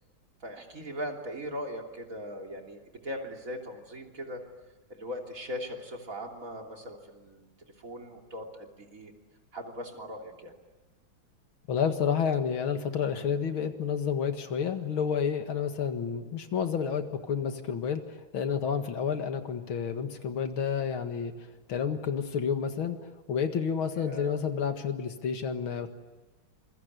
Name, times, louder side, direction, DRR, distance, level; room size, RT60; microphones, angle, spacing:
voice 1, 0.4-4.4 4.9-9.1 9.5-10.5 24.0-24.4, equal, 40° right, 2 dB, 3.5 m, -39 dB
voice 2, 11.7-18.0 18.3-21.3 21.7-23.0 23.3-25.9, left 7 dB, 90° left, 7 dB, 2.6 m, -30 dB
26.5 x 23.5 x 9.5 m, 1.2 s
omnidirectional pair, 2.2 m